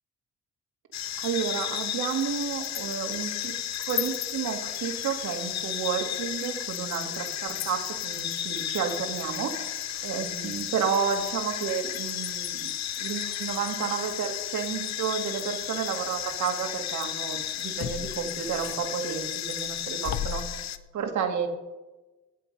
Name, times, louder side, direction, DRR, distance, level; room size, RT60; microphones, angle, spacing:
sound 1, 0.9-20.8, left 11 dB, 60° left, 0.8 m, -33 dB
voice 1, 1.2-3.5 3.9-9.7 10.0-12.7 13.0-20.4 20.9-21.5, right 7 dB, 70° right, 3 dB, 2.4 m, -31 dB
18.5 x 7.8 x 5.4 m, 1.1 s
cardioid pair, 90°, 30 cm